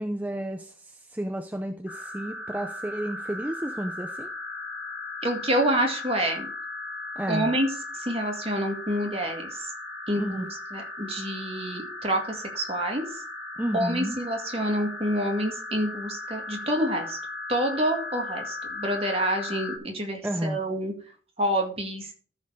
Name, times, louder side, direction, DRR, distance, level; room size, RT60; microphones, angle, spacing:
voice 1, 0.0-4.3 7.2-7.5 10.2-10.5 13.6-14.2 20.2-20.6, right 1 dB, 10° right, 6 dB, 0.5 m, -31 dB
sound 1, 1.9-19.8, left 2 dB, 50° left, 2.1 m, -37 dB
voice 2, 5.2-6.5 7.3-7.7 8.0-9.7 10.1-13.0 13.7-17.2 17.5-20.9 21.4-22.1, right 1 dB, 30° right, 2 dB, 2.0 m, -27 dB
13.0 x 4.6 x 4.8 m, 0.42 s
head